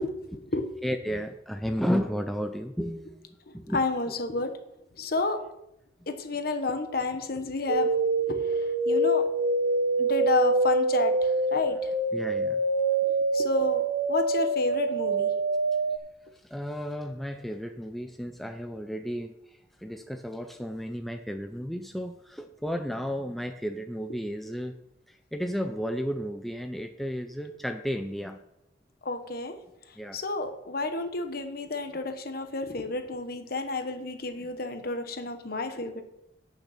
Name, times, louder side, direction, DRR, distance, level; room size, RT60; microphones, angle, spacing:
voice 1, 0.0-0.7 3.5-4.5 4.9-5.4 6.1-7.9 8.3-9.3 10.0-11.9 13.0-13.8 14.1-15.3 29.0-29.6 29.9-36.0, left 3 dB, 50° left, 7 dB, 1.1 m, -31 dB
voice 2, 0.8-3.8 12.1-12.6 16.3-24.8 25.1-28.4 30.0-30.2, equal, ahead, 6 dB, 0.4 m, -33 dB
sound 1, 7.7-16.0, right 2 dB, 75° right, 0.8 m, -25 dB
8.9 x 6.5 x 5.8 m, 0.83 s
head